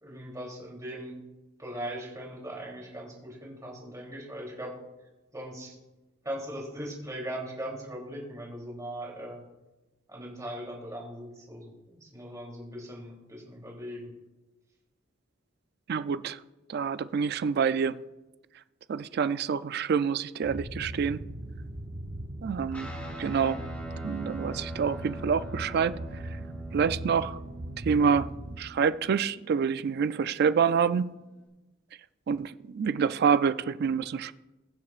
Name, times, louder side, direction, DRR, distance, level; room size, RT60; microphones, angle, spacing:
voice 1, 0.0-1.1 1.6-4.8 5.3-5.8 6.2-9.4 10.1-14.1, right 1 dB, 15° right, 3.1 m, -39 dB
voice 2, 15.9-16.4 16.7-18.0 18.9-21.2 22.4-22.9 23.2-23.6 24.0-26.0 26.7-27.4 27.8-28.3 28.6-31.1 32.3-34.3, right 6 dB, 55° right, 0.3 m, -27 dB
sound 1, 20.4-28.6, right 1 dB, 75° right, 1.5 m, -39 dB
Guitar, 22.7-31.5, right 2 dB, 5° left, 3.9 m, -45 dB
22.0 x 7.5 x 2.4 m
head